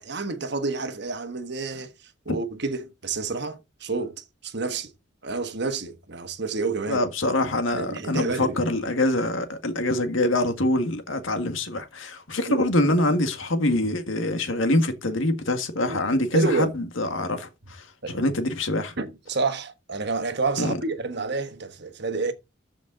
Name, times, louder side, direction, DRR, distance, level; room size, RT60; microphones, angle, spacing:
voice 1, 0.0-4.9 5.2-7.0 7.7-8.6 12.4-12.7 15.9-16.0 16.3-16.7 18.0-18.2 19.0-22.3, right 3 dB, 55° right, 1.3 m, -29 dB
voice 2, 6.9-17.9 18.1-18.9 20.6-20.8, left 1 dB, 75° left, 1.7 m, -24 dB
13.5 x 5.3 x 3.9 m
head